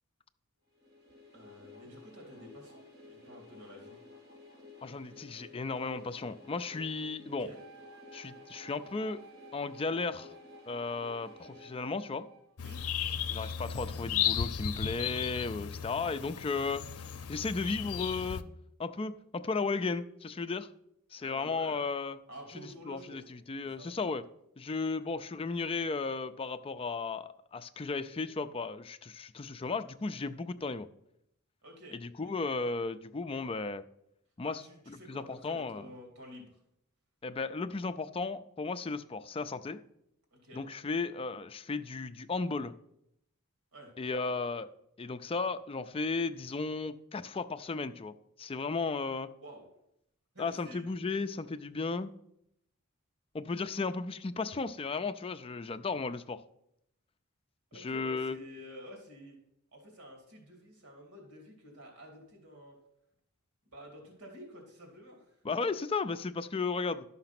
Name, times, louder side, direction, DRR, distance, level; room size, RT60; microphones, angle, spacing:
sound 1, 0.7-12.6, left 3 dB, 45° right, 3.3 m, -54 dB
voice 1, 1.3-4.0 7.4-7.6 12.6-12.8 21.2-21.9 22.3-23.3 23.7-23.9 31.6-32.3 34.4-36.6 40.3-40.6 43.7-43.9 44.2-44.3 49.4-49.7 50.3-50.9 57.7-59.4 59.7-62.8 63.7-65.4, equal, 90° right, 1 dB, 2.7 m, -50 dB
voice 2, 4.8-7.5 8.1-9.2 9.5-10.3 10.7-12.3 13.3-18.4 18.8-20.7 21.1-22.2 22.5-24.2 24.6-30.9 31.9-33.8 34.4-34.6 34.9-35.8 37.2-39.8 40.5-42.7 44.0-44.7 45.0-49.3 50.4-52.1 53.3-56.4 57.7-58.4 65.4-67.0, left 4 dB, 25° left, 11 dB, 0.4 m, -35 dB
Wind instrument woodwind instrument, 7.5-12.6, right 6 dB, 70° right, 1.1 m, -56 dB
sound 2, 12.6-18.4, left 9 dB, 80° left, 0.6 m, -35 dB
11.5 x 5.8 x 5.9 m, 0.78 s
head